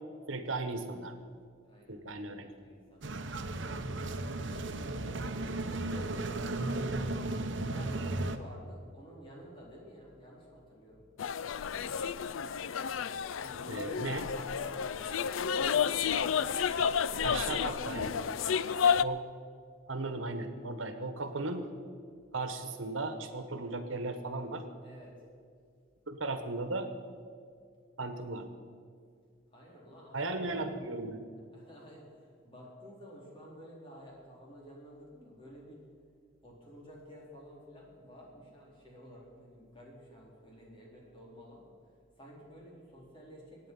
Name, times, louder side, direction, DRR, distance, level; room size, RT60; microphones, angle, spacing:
voice 1, 0.3-1.1 1.9-2.5 13.7-14.2 17.2-18.1 19.0-19.2 19.9-21.7 22.3-24.6 26.1-26.9 28.0-28.5 30.1-31.2, right 2 dB, 80° right, 8 dB, 1.4 m, -36 dB
voice 2, 1.6-3.5 4.4-7.1 7.6-11.1 13.3-15.6 24.8-25.2 29.5-30.6 31.5-35.8 36.4-41.7 42.2-43.7, equal, 25° left, -3 dB, 4.1 m, -52 dB
sound 1, 3.0-8.4, right 2 dB, 65° right, 1.0 m, -35 dB
sound 2, 11.2-19.0, left 7 dB, 80° left, 0.4 m, -31 dB
24.0 x 9.4 x 5.6 m, 2.2 s
head